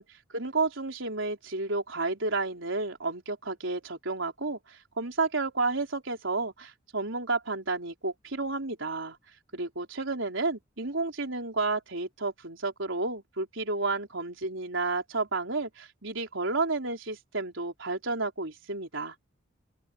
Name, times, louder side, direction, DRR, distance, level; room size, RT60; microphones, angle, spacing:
voice 1, 0.3-9.2 9.5-19.1, right 3 dB, 80° right, 3.9 m, -31 dB
head